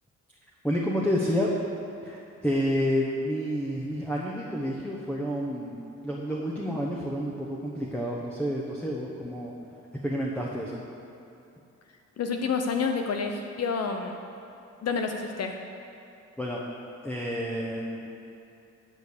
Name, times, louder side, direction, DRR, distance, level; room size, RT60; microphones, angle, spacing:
voice 1, 0.6-1.5 2.0-9.5 10.0-10.8 16.4-16.6 17.0-18.1, equal, 5° left, -3 dB, 1.1 m, -29 dB
voice 2, 12.2-14.2 14.8-15.6, left 5 dB, 55° left, 4 dB, 0.7 m, -29 dB
11.0 x 5.3 x 6.6 m, 2.8 s
cardioid pair, 90°, 30 cm